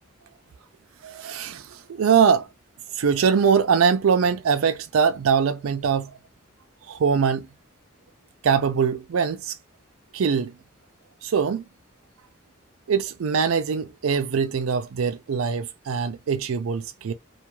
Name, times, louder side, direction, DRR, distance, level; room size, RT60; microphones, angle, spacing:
voice 1, 1.0-2.5 3.0-6.1 6.9-7.5 8.4-9.6 10.1-10.5 11.2-11.6 12.9-17.1, right 6 dB, 85° right, 0.4 m, -22 dB
2.3 x 2.3 x 2.9 m
head